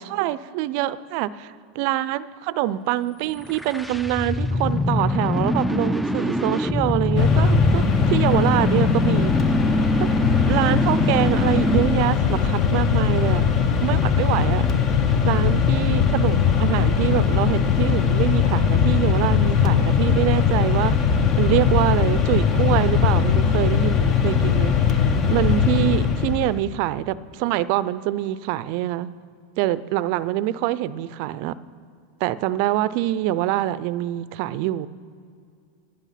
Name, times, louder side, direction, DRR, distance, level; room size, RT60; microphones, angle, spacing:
voice 1, 0.0-9.3 10.0-10.1 10.5-13.4 13.8-14.7 15.2-20.9 21.4-25.0 25.3-29.1 29.6-31.6 32.2-34.9, right 14 dB, 60° right, 17 dB, 0.4 m, -25 dB
sound 1, 3.4-12.0, left 1 dB, ahead, 0.4 m, -23 dB
Mechanisms, 7.2-26.6, left 7 dB, 40° left, 0.9 m, -20 dB
11.0 x 11.0 x 5.7 m, 2.3 s
hypercardioid pair, 110°, 0 cm